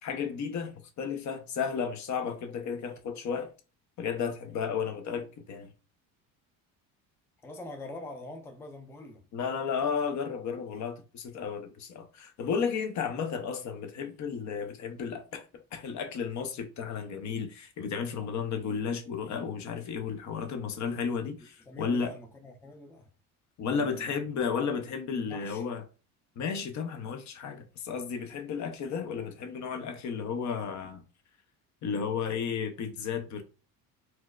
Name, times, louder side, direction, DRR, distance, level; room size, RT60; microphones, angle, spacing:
voice 1, 0.0-3.5 4.0-5.7 9.3-15.4 15.7-22.1 23.6-25.8 26.4-31.0 31.8-33.4, left 6 dB, 50° left, 0.7 m, -33 dB
voice 2, 7.4-9.2 21.6-23.1 23.7-24.1 25.1-25.7, left 1 dB, 5° left, 0.4 m, -44 dB
4.4 x 2.1 x 2.3 m
cardioid pair, 105°, 38 cm